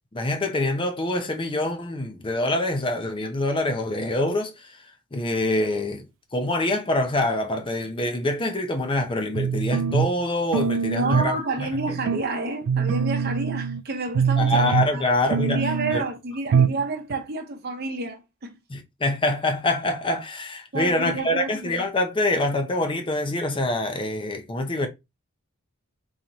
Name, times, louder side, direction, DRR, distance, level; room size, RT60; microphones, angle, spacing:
voice 1, 0.1-4.7 5.1-6.0 6.3-11.7 14.4-15.6 15.9-16.0 18.7-24.9, left 2 dB, 25° left, 0.6 m, -25 dB
sound 1, 9.3-10.2 10.5-11.4 11.7-12.2 12.7-13.8 14.1-15.0 15.3-16.0 16.5-16.8 17.1-17.2, right 6 dB, 75° right, 0.3 m, -23 dB
voice 2, 10.9-14.6 14.9-15.0 15.5-18.6 20.7-21.9, right 3 dB, 50° right, 0.8 m, -29 dB
3.9 x 3.0 x 2.9 m
head